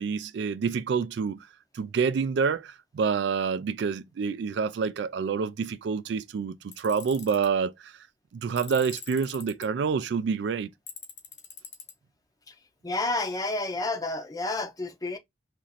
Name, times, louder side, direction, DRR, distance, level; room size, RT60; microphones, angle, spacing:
voice 1, 0.0-1.4 1.7-7.9 8.3-10.7, right 5 dB, 60° right, 0.3 m, -27 dB
Tools, 6.7-7.5 8.6-9.7 10.9-11.9, left 7 dB, 65° left, 1.0 m, -43 dB
voice 2, 12.8-15.2, left 2 dB, 20° left, 0.6 m, -30 dB
3.0 x 2.5 x 4.0 m
head